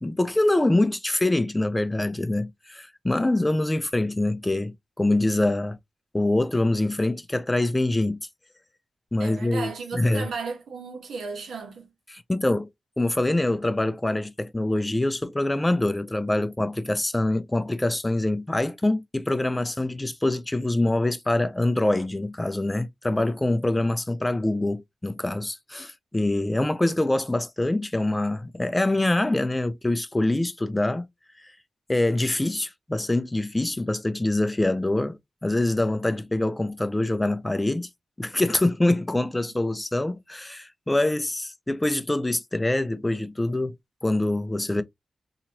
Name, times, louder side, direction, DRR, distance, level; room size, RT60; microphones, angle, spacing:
voice 1, 0.0-5.8 6.1-8.2 9.1-10.3 12.1-12.7 13.0-31.1 31.4-31.5 31.9-37.9 38.2-43.8 44.0-44.8, left 1 dB, 15° left, 0.4 m, -25 dB
voice 2, 9.2-11.9, right 4 dB, 90° right, 1.1 m, -34 dB
2.9 x 2.8 x 2.5 m
wide cardioid pair, 90°, 0 cm